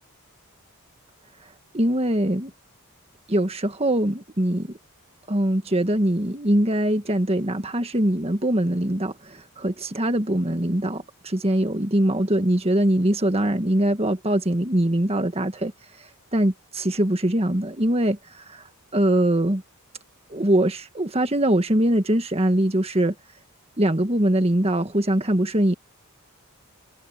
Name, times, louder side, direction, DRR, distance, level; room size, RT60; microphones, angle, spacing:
voice 1, 1.7-2.5 3.3-4.7 5.3-15.7 16.3-18.2 18.5-18.6 18.9-19.6 20.3-23.1 23.8-25.7, right 1 dB, 25° right, 1.7 m, -22 dB
head